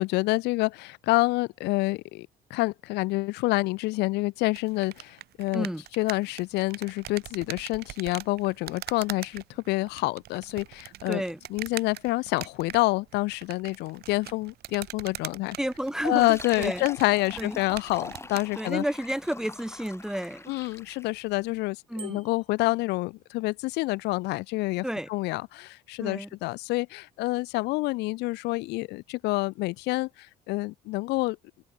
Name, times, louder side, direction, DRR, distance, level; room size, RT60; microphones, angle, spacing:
voice 1, 0.0-5.7 6.0-11.2 11.5-15.6 16.0-18.8 20.5-24.8 25.1-31.4, left 21 dB, 85° left, 0.5 m, -28 dB
sound 1, 4.5-18.5, right 15 dB, 70° right, 1.5 m, -43 dB
voice 2, 5.5-5.8 11.1-11.4 15.6-16.8 17.4-17.6 18.6-20.5 21.9-22.2 24.8-25.1 26.0-26.3, right 1 dB, 5° right, 1.6 m, -31 dB
Fill (with liquid), 16.0-21.2, left 3 dB, 15° left, 2.4 m, -43 dB
Bicycle bell, 22.0-22.6, right 6 dB, 35° right, 1.7 m, -47 dB
open air
cardioid pair, 110°, 17 cm